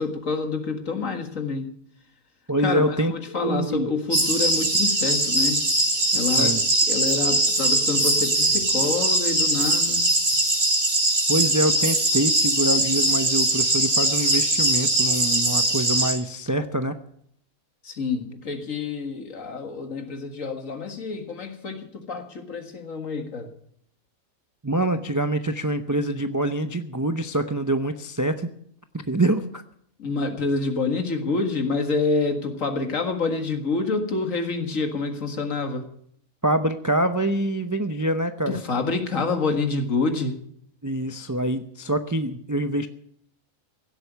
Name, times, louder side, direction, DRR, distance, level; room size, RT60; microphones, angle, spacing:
voice 1, 0.0-1.7 2.6-5.7 6.1-6.6 6.9-10.1 17.8-23.5 30.0-35.9 38.5-40.4, left 4 dB, 65° left, 5 dB, 2.1 m, -27 dB
voice 2, 2.5-3.9 6.4-6.6 11.3-17.0 24.6-28.5 28.9-29.6 36.4-38.6 40.8-42.9, right 1 dB, 25° right, 8 dB, 0.4 m, -25 dB
sound 1, 4.1-16.1, right 1 dB, 50° right, 3.8 m, -21 dB
16.5 x 8.1 x 8.1 m, 0.68 s
omnidirectional pair, 1.5 m